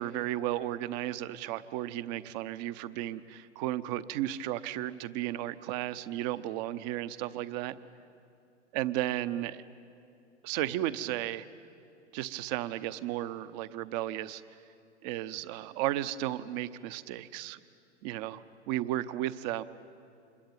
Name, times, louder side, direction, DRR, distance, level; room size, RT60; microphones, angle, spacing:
voice 1, 0.0-7.8 8.7-9.6 10.4-11.5 12.1-14.4 15.0-17.6 18.0-19.6, right 14 dB, 40° right, 14 dB, 0.9 m, -34 dB
27.0 x 22.0 x 9.1 m, 2.5 s
figure-of-eight pair, 95°, 34 cm